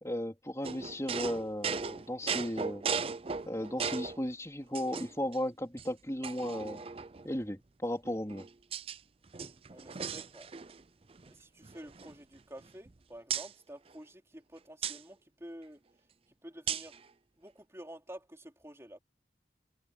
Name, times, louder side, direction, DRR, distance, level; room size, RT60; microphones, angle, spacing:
voice 1, 0.0-2.8 3.5-6.8 7.2-8.5, left 1 dB, 15° left, 3.6 m, -35 dB
sound 1, 0.6-4.2 4.7-5.4 5.8-5.9 6.2-7.3 8.0-9.0 9.3-10.8 11.1-11.3 11.6-12.9 13.3-13.5 14.8-15.0 16.7-17.0, right 6 dB, 35° right, 0.5 m, -37 dB
voice 2, 9.7-10.5 11.2-15.8 16.4-17.0 17.4-19.0, right 1 dB, 15° right, 3.6 m, -49 dB
head